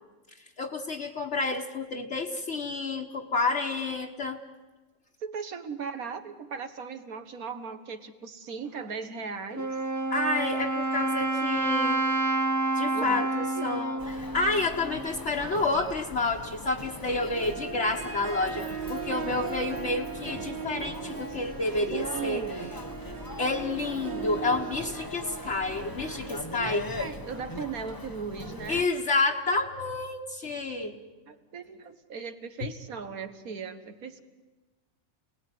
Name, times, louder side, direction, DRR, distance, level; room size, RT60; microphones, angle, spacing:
voice 1, 0.6-4.4 10.1-12.0 12.7-14.0 14.3-22.4 23.4-26.8 28.7-31.0, left 3 dB, 50° left, 0 dB, 1.5 m, -29 dB
voice 2, 5.2-9.7 12.9-13.3 13.6-13.9 21.3-21.4 21.9-22.8 26.1-26.2 26.6-28.8 31.3-34.2, right 5 dB, 75° right, 9 dB, 2.0 m, -38 dB
Wind instrument woodwind instrument, 9.5-15.3, right 2 dB, 20° right, 0.5 m, -29 dB
Human voice, 14.0-28.9, left 2 dB, 15° left, 0.9 m, -41 dB
Harp, 16.9-28.1, right 5 dB, 50° right, 1.6 m, -39 dB
28.5 x 19.0 x 9.6 m, 1.2 s
omnidirectional pair, 1.5 m